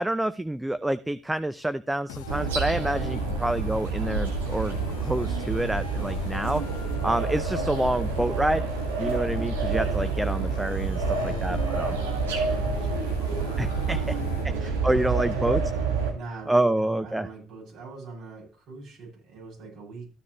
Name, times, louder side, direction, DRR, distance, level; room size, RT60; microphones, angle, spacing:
voice 1, 0.0-6.6 7.0-8.7 9.0-12.0 13.6-14.0 14.6-15.6 16.5-17.3, right 1 dB, 10° right, 13 dB, 0.5 m, -27 dB
sound 1, 2.1-14.4, left 4 dB, 85° left, 1.0 m, -42 dB
sound 2, 2.3-16.1, right 4 dB, 90° right, 1.8 m, -28 dB
voice 2, 11.1-14.7 15.3-15.5 16.1-20.1, right 4 dB, 65° right, -3 dB, 7.3 m, -42 dB
14.0 x 9.7 x 3.1 m, 0.34 s
hypercardioid pair, 55°, 0 cm